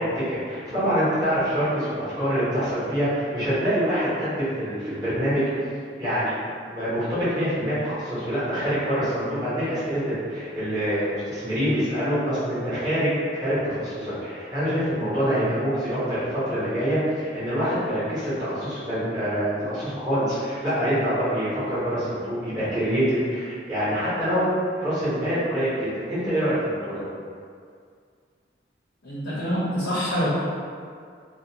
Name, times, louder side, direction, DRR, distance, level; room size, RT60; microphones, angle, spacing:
voice 1, 0.0-5.4 6.0-6.4 6.7-13.1 13.4-24.5 24.8-27.0, equal, 20° right, -14 dB, 1.0 m, -25 dB
voice 2, 29.0-30.3, equal, 75° left, -9 dB, 0.6 m, -26 dB
2.4 x 2.1 x 2.7 m, 2.2 s
head